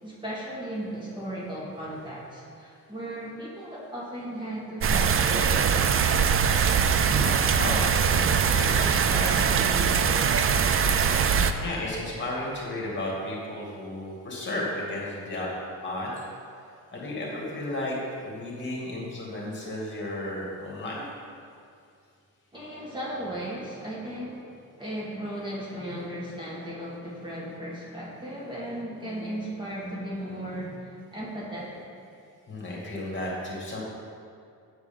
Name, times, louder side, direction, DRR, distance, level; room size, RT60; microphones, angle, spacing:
voice 1, 0.0-6.1 22.5-24.5 24.8-31.8, right 1 dB, 15° right, -7 dB, 2.0 m, -36 dB
sound 1, 4.8-11.5, right 6 dB, 40° right, 0.5 m, -22 dB
voice 2, 6.9-9.9 11.6-15.5 15.8-16.1 16.6-21.0 32.5-33.8, left 1 dB, 30° left, -4 dB, 2.6 m, -34 dB
9.0 x 4.8 x 7.2 m, 2.3 s
cardioid pair, 115°, 36 cm